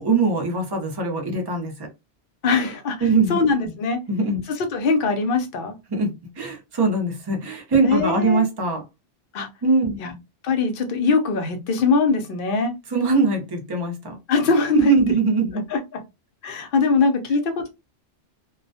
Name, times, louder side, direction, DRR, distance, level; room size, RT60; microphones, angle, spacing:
voice 1, 0.0-1.9 3.0-3.4 4.1-4.4 5.9-8.8 9.6-10.0 12.9-14.2 14.7-15.6, right 3 dB, 30° right, 0.5 m, -22 dB
voice 2, 2.4-3.0 3.3-4.0 4.7-5.7 7.9-8.5 9.3-9.5 10.0-10.1 10.4-12.7 14.3-15.0 15.7-15.8 16.4-17.7, left 4 dB, 55° left, 0.7 m, -21 dB
2.3 x 2.1 x 2.5 m
omnidirectional pair, 1.2 m